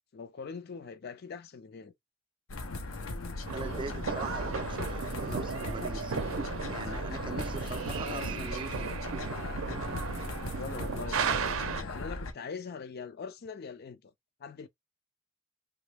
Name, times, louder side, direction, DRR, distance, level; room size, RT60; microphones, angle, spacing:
voice 1, 0.1-1.9 7.9-8.3 10.6-14.1 14.4-14.7, left 5 dB, 50° left, 0.4 m, -42 dB
sound 1, 2.5-12.3, left 2 dB, 90° left, 0.7 m, -38 dB
voice 2, 3.5-6.2 6.7-9.2, right 4 dB, 25° right, 0.4 m, -41 dB
sound 2, 3.5-11.8, right 6 dB, 80° right, 0.5 m, -35 dB
2.9 x 2.1 x 3.3 m
head